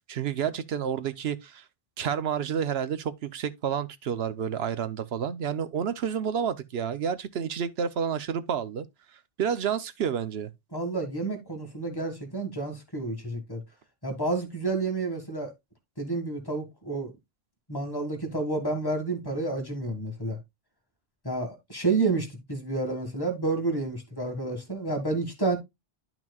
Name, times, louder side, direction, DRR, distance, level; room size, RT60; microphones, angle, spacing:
voice 1, 0.1-1.6 2.0-8.9 9.4-10.5, right 8 dB, 85° right, 1.0 m, -30 dB
voice 2, 10.7-13.6 14.0-15.5 16.0-17.1 17.7-20.4 21.2-25.6, right 3 dB, 20° left, 1.8 m, -30 dB
11.0 x 6.0 x 2.3 m
omnidirectional pair, 1.0 m